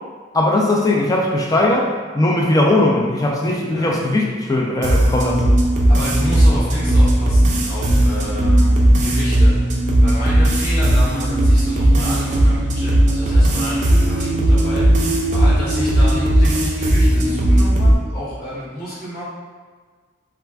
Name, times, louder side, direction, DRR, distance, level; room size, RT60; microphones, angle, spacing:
voice 1, 0.3-1.9 2.1-5.6, left 1 dB, 20° left, -2 dB, 0.4 m, -18 dB
sound 1, 4.8-18.0, right 1 dB, 40° right, 0.4 m, -16 dB
voice 2, 5.9-19.2, equal, 60° left, -10 dB, 1.1 m, -30 dB
2.4 x 2.2 x 3.4 m, 1.5 s
head